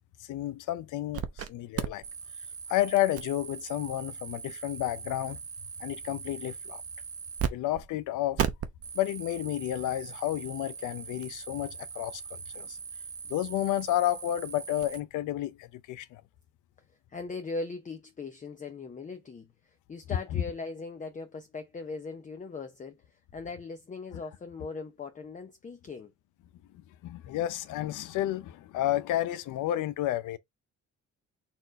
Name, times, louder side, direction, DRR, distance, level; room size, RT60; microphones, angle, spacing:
voice 1, 0.3-2.0 2.7-5.4 5.8-6.8 7.5-8.5 8.9-12.8 13.3-16.2 20.3-20.4 27.0-30.4, left 13 dB, 80° left, 0.6 m, -31 dB
sound 1, 1.1-1.5 1.7-7.5 7.7-7.9 8.4-15.0, right 7 dB, 50° right, 0.7 m, -38 dB
voice 2, 17.1-26.1, left 4 dB, 25° left, 0.6 m, -40 dB
4.4 x 2.4 x 4.0 m
cardioid pair, 90°, 30 cm